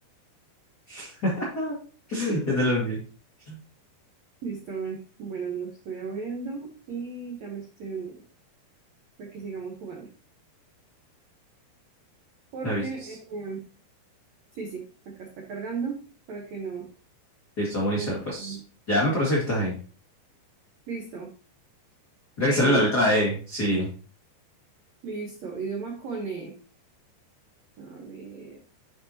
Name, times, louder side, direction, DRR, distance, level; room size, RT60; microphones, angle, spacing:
voice 1, 0.9-1.7 2.1-3.0 3.5-3.6 12.6-13.1 17.6-18.5 18.9-19.7 22.4-23.9, equal, 40° left, -6 dB, 1.4 m, -25 dB
voice 2, 4.4-8.2 9.2-10.1 12.5-13.6 14.5-16.0 16.3-16.8 17.9-18.6 20.9-21.3 22.4-22.9 25.0-26.5 27.8-28.6, right 4 dB, 80° right, 0 dB, 1.5 m, -35 dB
11.0 x 4.8 x 2.9 m, 0.37 s
omnidirectional pair, 5.0 m